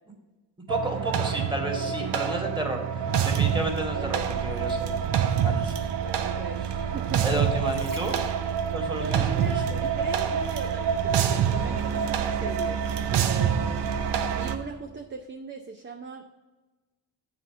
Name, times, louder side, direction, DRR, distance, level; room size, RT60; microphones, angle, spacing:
voice 1, 0.7-5.0 5.4-6.3 7.2-8.2 8.7-9.8, right 1 dB, 10° right, 2 dB, 1.9 m, -32 dB
sound 1, 0.7-14.6, right 8 dB, 65° right, 0.7 m, -26 dB
voice 2, 1.6-2.2 3.9-4.3 6.2-7.2 9.0-12.8 13.1-16.2, right 4 dB, 25° right, 4 dB, 0.7 m, -38 dB
sound 2, 7.4-10.5 10.8-12.2 12.8-12.9, right 3 dB, 45° right, 1.3 m, -47 dB
7.3 x 4.2 x 6.8 m, 1.2 s
supercardioid pair, 65°, 44 cm